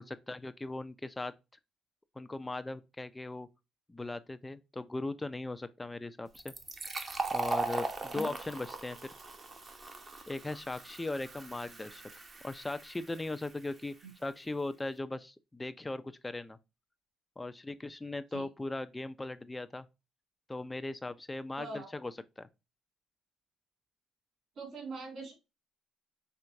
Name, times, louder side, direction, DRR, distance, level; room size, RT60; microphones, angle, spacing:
voice 1, 0.0-1.3 2.2-3.5 3.9-6.5 7.0-9.0 10.3-13.9 14.2-16.6 17.4-19.9 20.5-22.5, left 2 dB, 15° left, 0.5 m, -39 dB
Fill (with liquid), 6.3-13.7, right 3 dB, 35° right, 0.9 m, -39 dB
voice 2, 21.6-21.9 24.6-25.3, right 2 dB, 55° right, 2.5 m, -42 dB
4.6 x 3.3 x 2.6 m
cardioid pair, 90°, 0 cm